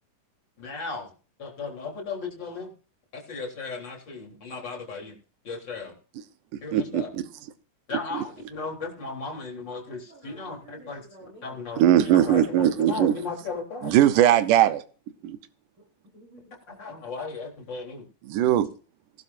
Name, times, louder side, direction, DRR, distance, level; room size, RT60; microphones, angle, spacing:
voice 1, 0.6-1.1 1.4-2.7 3.1-5.2 5.4-5.9 6.6-7.1 7.9-11.0 11.4-13.9 16.7-18.0, left 4 dB, 35° left, -1 dB, 4.2 m, -35 dB
voice 2, 6.7-7.2 8.1-8.2 11.8-13.1 13.8-14.8 15.2-15.4 18.2-18.7, right 11 dB, 75° right, 11 dB, 2.6 m, -20 dB
voice 3, 9.9-11.6 12.0-12.1 15.8-16.5, right 2 dB, 40° right, -4 dB, 6.1 m, -51 dB
20.5 x 12.0 x 2.6 m, 0.38 s
omnidirectional pair, 3.8 m